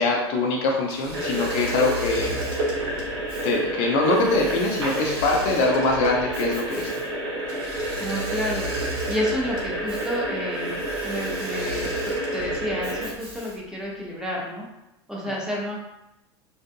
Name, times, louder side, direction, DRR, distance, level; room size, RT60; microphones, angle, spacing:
voice 1, 0.0-2.4 3.4-6.9, left 3 dB, 50° left, 0 dB, 0.5 m, -23 dB
Engine / Mechanisms, 0.9-13.8, equal, 60° right, 1.1 m, -37 dB
sound 1, 1.1-13.1, right 1 dB, 75° right, 0.6 m, -29 dB
voice 2, 8.0-8.7 9.1-14.6 15.1-15.8, left 1 dB, 5° right, -4 dB, 0.7 m, -30 dB
2.4 x 2.3 x 2.6 m, 0.93 s
hypercardioid pair, 85°, 14 cm